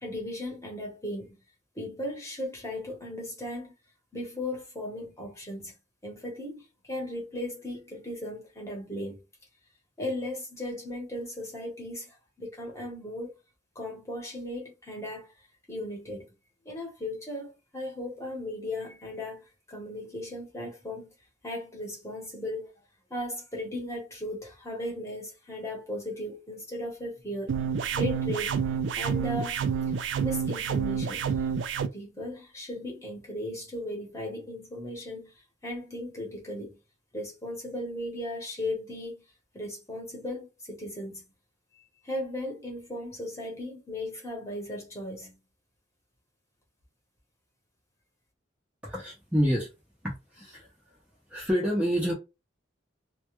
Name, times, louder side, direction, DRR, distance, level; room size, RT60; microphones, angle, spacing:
voice 1, 0.0-1.4 1.7-3.7 4.1-5.7 6.0-9.2 10.0-13.4 13.7-15.3 15.7-16.3 16.6-21.1 21.4-22.8 23.1-27.6 27.9-28.6 29.0-29.9 30.2-31.5 31.9-35.3 35.6-36.8 37.1-39.2 39.5-41.3 42.0-45.4, left 1 dB, 15° left, 0.9 m, -37 dB
sound 1, 27.5-31.9, right 6 dB, 65° right, 0.3 m, -28 dB
voice 2, 48.8-49.7 50.0-50.7 51.3-52.1, equal, 5° right, 0.5 m, -28 dB
2.2 x 2.1 x 2.9 m
head